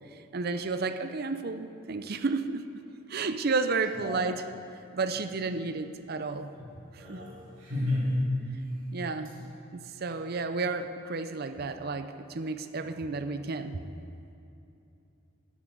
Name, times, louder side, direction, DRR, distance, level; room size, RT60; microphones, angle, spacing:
voice 1, 0.0-2.6 3.1-4.4 4.9-6.5 6.9-7.2 8.9-13.8, right 4 dB, 50° right, 9 dB, 0.6 m, -32 dB
voice 2, 7.0-8.3, left 1 dB, 75° right, -9 dB, 3.0 m, -31 dB
10.0 x 8.7 x 8.1 m, 2.8 s
head